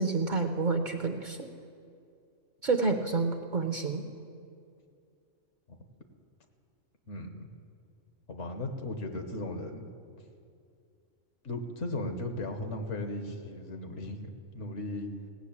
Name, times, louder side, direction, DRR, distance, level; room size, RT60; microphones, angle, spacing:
voice 1, 0.0-1.5 2.6-4.0, right 4 dB, 45° right, 6 dB, 0.7 m, -29 dB
voice 2, 7.1-7.5 8.3-9.9 11.4-15.1, left 2 dB, 65° left, 5 dB, 1.4 m, -36 dB
17.5 x 6.3 x 8.6 m, 2.4 s
omnidirectional pair, 1.3 m